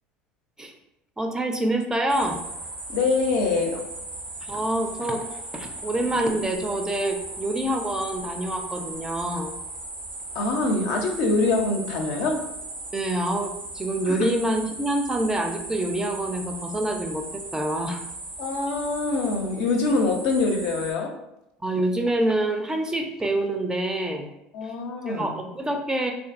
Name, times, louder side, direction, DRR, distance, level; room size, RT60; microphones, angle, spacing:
voice 1, 1.2-2.4 4.4-5.3 5.5-9.5 12.9-17.2 17.5-18.0 21.6-24.3 24.6-24.7 25.1-26.1, right 1 dB, 15° right, 4 dB, 0.4 m, -26 dB
sound 1, 2.1-20.9, right 2 dB, 80° right, 0.9 m, -37 dB
voice 2, 2.9-3.8 10.3-12.5 14.1-14.3 18.4-21.1 24.5-25.4, left 3 dB, 65° left, 2 dB, 0.5 m, -24 dB
2.6 x 2.5 x 2.4 m, 0.85 s
hypercardioid pair, 75°, 4 cm